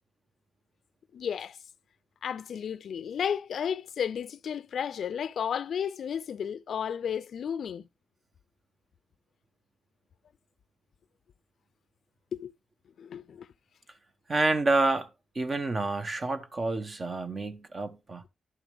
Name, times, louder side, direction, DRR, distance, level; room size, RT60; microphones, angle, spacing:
voice 1, 1.1-1.6 2.2-7.9 12.3-12.5 13.0-13.5, left 8 dB, 80° left, 0.4 m, -33 dB
voice 2, 14.3-15.1 15.3-18.2, right 2 dB, 45° right, 1.2 m, -28 dB
11.0 x 6.0 x 3.5 m
cardioid pair, 55°, 0 cm